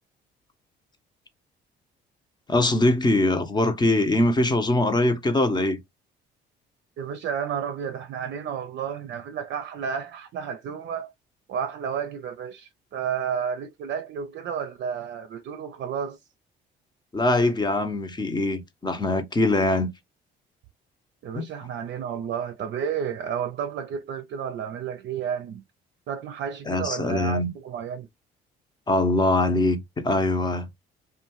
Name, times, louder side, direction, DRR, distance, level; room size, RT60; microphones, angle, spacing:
voice 1, 2.5-5.8 17.1-19.9 21.3-21.4 26.7-27.5 28.9-30.7, left 2 dB, 20° left, 0.7 m, -22 dB
voice 2, 7.0-11.1 11.5-16.2 21.2-25.6 26.1-28.1, right 7 dB, 60° right, 0.5 m, -31 dB
2.6 x 2.3 x 2.9 m
supercardioid pair, 75°, 20 cm